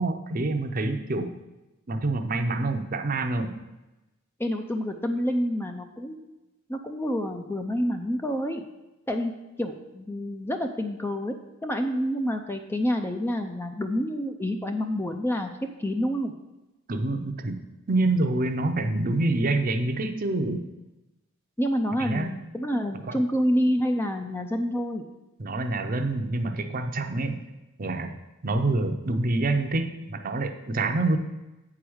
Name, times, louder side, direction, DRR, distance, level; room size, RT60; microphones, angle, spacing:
voice 1, 0.0-1.3 1.9-3.5 16.9-17.6 17.9-20.6 22.0-22.3 23.1-23.2 25.4-27.5 27.8-28.2 28.4-31.2, right 2 dB, 40° right, 6 dB, 0.6 m, -26 dB
voice 2, 4.4-6.2 6.7-8.7 9.1-9.3 9.6-11.3 11.6-15.5 15.8-16.3 21.6-25.1, equal, 10° left, 5 dB, 0.4 m, -28 dB
7.9 x 4.8 x 6.2 m, 1.0 s
head